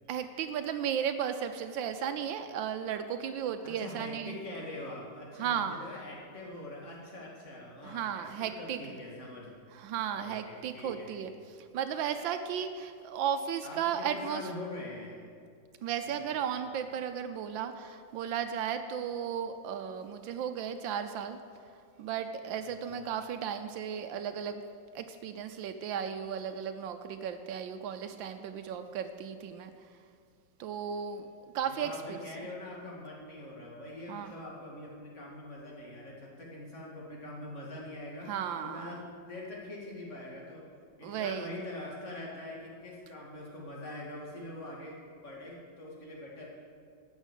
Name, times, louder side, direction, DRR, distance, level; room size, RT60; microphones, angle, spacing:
voice 1, 0.1-4.4 5.4-5.8 7.8-8.8 9.7-14.5 15.8-21.4 22.0-24.6 24.9-29.7 30.6-31.3 31.5-32.2 34.1-34.3 38.3-39.0 41.0-41.5, right 8 dB, 80° right, 8 dB, 1.4 m, -35 dB
voice 2, 3.6-9.5 10.1-11.3 13.6-15.2 16.1-16.3 22.6-23.1 31.8-38.3 38.6-40.6 41.0-46.5, left 1 dB, 40° left, -3 dB, 2.6 m, -44 dB
13.5 x 6.4 x 8.3 m, 2.2 s
omnidirectional pair, 2.1 m